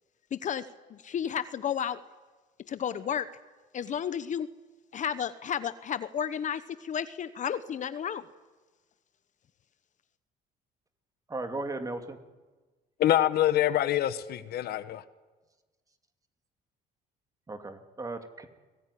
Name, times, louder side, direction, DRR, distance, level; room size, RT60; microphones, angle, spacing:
voice 1, 0.3-2.0 2.7-3.3 3.7-4.5 4.9-8.3, left 8 dB, 45° left, 1.0 m, -32 dB
voice 2, 11.3-12.2 17.5-18.5, right 2 dB, 20° right, 2.7 m, -36 dB
voice 3, 13.0-15.0, left 12 dB, 70° left, 1.1 m, -25 dB
29.0 x 20.5 x 9.9 m
cardioid pair, 110°, 17 cm